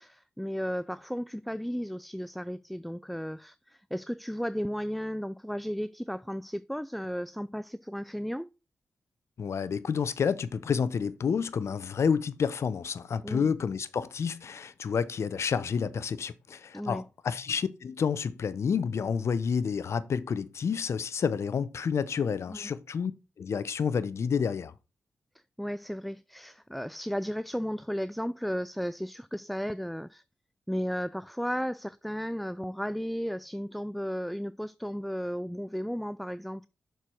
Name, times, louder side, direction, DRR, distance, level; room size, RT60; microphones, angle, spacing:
voice 1, 0.0-8.5 13.2-13.5 16.7-17.0 22.5-22.7 25.6-30.2 30.7-36.7, equal, ahead, 0.3 m, -34 dB
voice 2, 9.4-23.1 23.4-24.7, left 6 dB, 65° left, 0.7 m, -29 dB
6.7 x 4.6 x 6.0 m
supercardioid pair, 40°, 5 cm